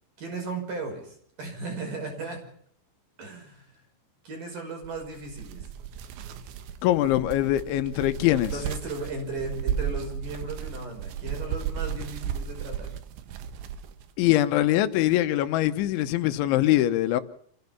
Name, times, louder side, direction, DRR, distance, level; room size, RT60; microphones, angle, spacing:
voice 1, 0.2-2.4 3.2-3.8 4.2-5.7 8.5-13.0, right 3 dB, 45° right, 7.0 m, -36 dB
sound 1, 4.8-14.1, right 8 dB, 80° right, 3.7 m, -35 dB
voice 2, 6.8-8.5 14.2-17.2, left 14 dB, 90° left, 3.5 m, -23 dB
28.0 x 16.5 x 5.9 m
omnidirectional pair, 5.2 m